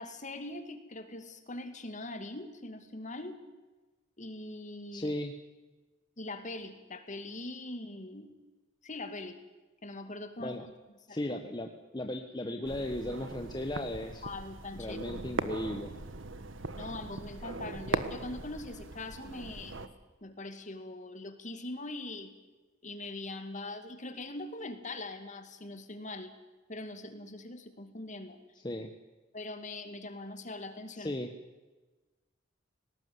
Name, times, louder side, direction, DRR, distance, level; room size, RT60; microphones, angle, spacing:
voice 1, 0.0-3.4 4.2-5.1 6.2-8.4 8.8-9.4 9.8-10.7 11.1-11.4 14.2-15.0 16.8-19.9 20.2-22.3 22.8-26.3 26.7-28.4 29.3-31.1, left 2 dB, 40° left, 9 dB, 2.4 m, -42 dB
voice 2, 4.9-5.3 10.4-10.7 11.1-11.7 11.9-14.2 14.7-15.9 28.6-28.9 31.0-31.3, left 1 dB, 20° left, 5 dB, 1.4 m, -36 dB
sound 1, 12.6-19.9, right 3 dB, 80° right, 1.5 m, -39 dB
19.0 x 18.5 x 9.7 m, 1.2 s
head